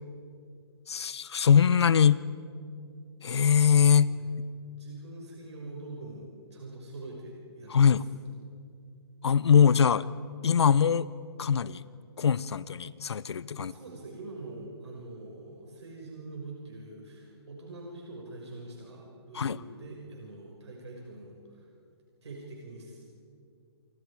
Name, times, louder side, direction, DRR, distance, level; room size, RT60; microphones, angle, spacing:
voice 1, 0.9-2.2 3.2-4.1 7.7-8.0 9.2-10.1 10.4-11.1 11.4-11.8 12.2-13.7 19.3-19.6, left 7 dB, 75° left, 18 dB, 0.9 m, -22 dB
voice 2, 4.7-8.0 13.6-21.7 22.2-23.0, right 2 dB, 80° right, -1 dB, 5.7 m, -44 dB
29.0 x 26.0 x 4.9 m, 2.3 s
hypercardioid pair, 175°, 14 cm